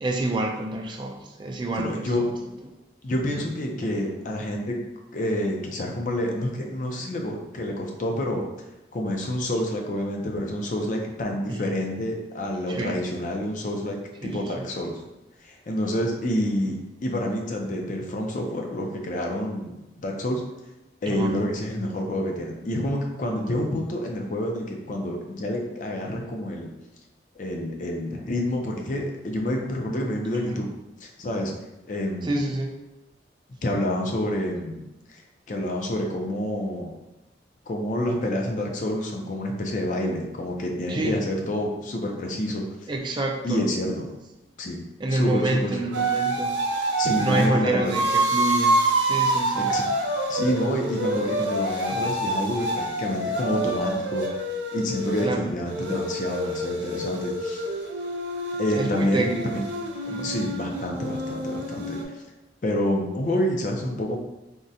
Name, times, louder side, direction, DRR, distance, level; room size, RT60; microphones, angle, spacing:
voice 1, 0.0-2.1 11.5-11.8 12.7-12.9 14.2-14.7 21.1-21.4 30.5-30.6 32.2-32.7 40.9-41.2 42.9-43.7 45.0-46.6 47.2-49.7 55.2-55.5 58.7-59.5 60.1-60.4, right 2 dB, 25° right, 1 dB, 0.3 m, -28 dB
voice 2, 1.8-2.2 3.0-4.8 5.1-8.4 8.9-15.0 15.4-19.7 20.0-20.4 21.0-26.7 27.4-30.7 31.0-31.5 31.9-32.4 33.6-34.8 35.1-35.2 35.5-36.9 37.7-42.6 43.4-44.1 44.6-44.8 45.1-45.8 47.0-47.9 49.6-49.9 50.3-54.3 54.7-57.7 58.6-59.6 60.2-62.0 62.6-64.2, left 1 dB, 45° left, 1 dB, 0.4 m, -28 dB
sound 1, 45.9-47.5 47.9-55.3 55.7-62.0, right 2 dB, 85° right, 0.5 m, -27 dB
3.6 x 2.1 x 2.7 m, 0.97 s
head